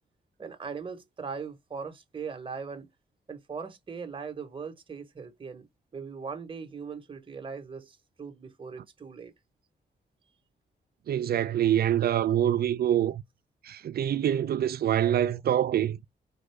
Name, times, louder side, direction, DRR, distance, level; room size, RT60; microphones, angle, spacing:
voice 1, 0.4-2.9 3.3-5.7 5.9-9.3, right 5 dB, 30° right, 0.9 m, -39 dB
voice 2, 11.1-13.2 13.6-16.0, right 10 dB, 60° right, 0.4 m, -25 dB
4.3 x 2.5 x 3.2 m
wide cardioid pair, 115°, 19 cm